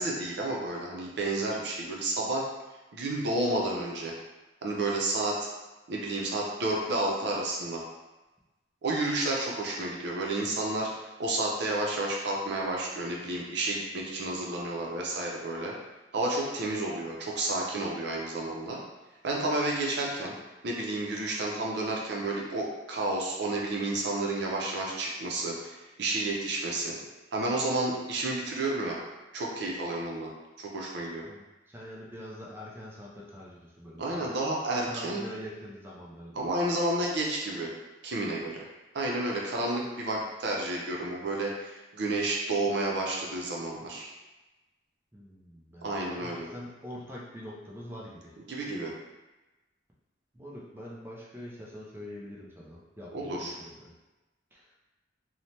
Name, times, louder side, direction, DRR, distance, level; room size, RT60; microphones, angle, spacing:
voice 1, 0.0-2.4 2.9-4.1 4.6-5.5 5.9-7.8 8.8-15.7 16.1-18.8 19.2-20.3 20.6-26.9 27.3-29.0 29.3-30.3 30.6-31.2 34.0-35.2 36.3-37.7 38.0-38.7 38.9-44.1 45.8-46.5 48.5-48.9 53.1-53.5, right 2 dB, 65° right, -2 dB, 0.6 m, -31 dB
voice 2, 31.2-34.3 34.8-36.5 45.1-48.3 50.3-53.9 54.5-54.7, equal, 15° right, -5 dB, 0.4 m, -44 dB
3.1 x 2.1 x 2.8 m, 1.1 s
head